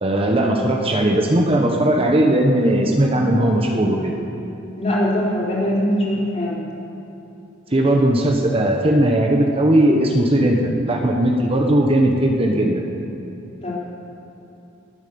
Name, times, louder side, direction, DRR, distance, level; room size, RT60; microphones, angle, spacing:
voice 1, 0.0-4.2 7.7-12.9, right 1 dB, 30° right, 1 dB, 1.1 m, -18 dB
voice 2, 4.8-6.6 13.6-13.7, equal, 35° left, -6 dB, 4.0 m, -21 dB
19.5 x 9.1 x 7.0 m, 2.9 s
head